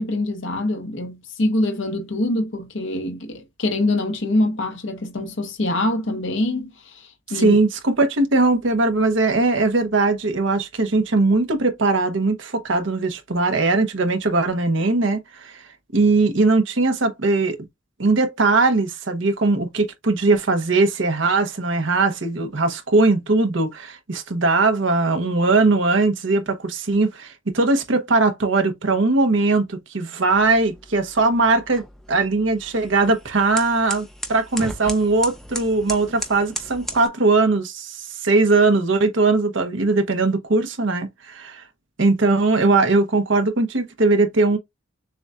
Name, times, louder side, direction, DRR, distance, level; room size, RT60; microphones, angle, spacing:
voice 1, 0.0-7.6, left 1 dB, 65° left, 0.9 m, -24 dB
voice 2, 7.3-15.6 15.9-17.6 18.0-31.8 32.1-41.6 42.0-44.6, right 3 dB, 65° right, 0.9 m, -20 dB
sound 1, 30.3-37.1, equal, ahead, 0.7 m, -36 dB
6.8 x 2.3 x 2.4 m
head